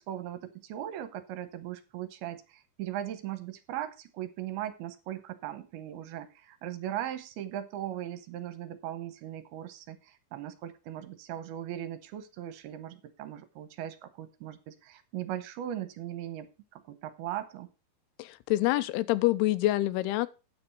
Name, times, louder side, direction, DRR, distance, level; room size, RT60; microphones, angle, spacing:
voice 1, 0.0-17.7, right 12 dB, 80° right, 2.7 m, -39 dB
voice 2, 18.2-20.3, left 16 dB, 85° left, 2.6 m, -26 dB
9.6 x 6.7 x 5.3 m
omnidirectional pair, 4.6 m